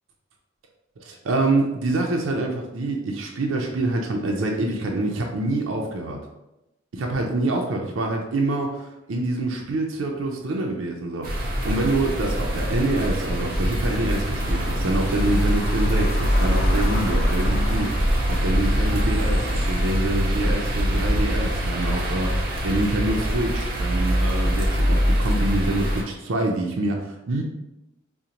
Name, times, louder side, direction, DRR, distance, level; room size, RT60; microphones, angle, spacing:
voice 1, 1.0-6.2 6.9-27.4, right 2 dB, 85° right, 1 dB, 0.5 m, -26 dB
sound 1, 11.2-26.0, equal, 50° right, 0.8 m, -23 dB
sound 2, 13.3-22.3, equal, 45° left, 0.7 m, -31 dB
5.0 x 2.1 x 2.8 m, 0.92 s
head